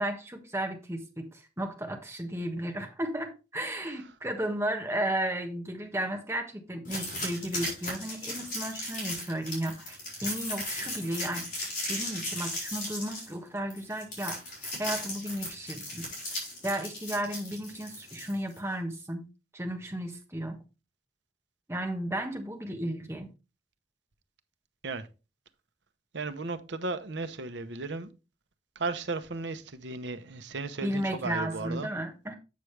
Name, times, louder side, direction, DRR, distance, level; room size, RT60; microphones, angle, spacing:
voice 1, 0.0-11.5 11.9-14.4 14.8-16.1 16.6-19.2 19.5-20.6 21.7-23.3 30.8-32.3, right 1 dB, 15° right, 1.3 m, -34 dB
sound 1, 6.8-18.6, left 1 dB, 50° left, 4.6 m, -36 dB
voice 2, 26.1-28.1 28.8-31.9, right 3 dB, 85° right, 0.8 m, -35 dB
8.3 x 6.3 x 3.3 m
head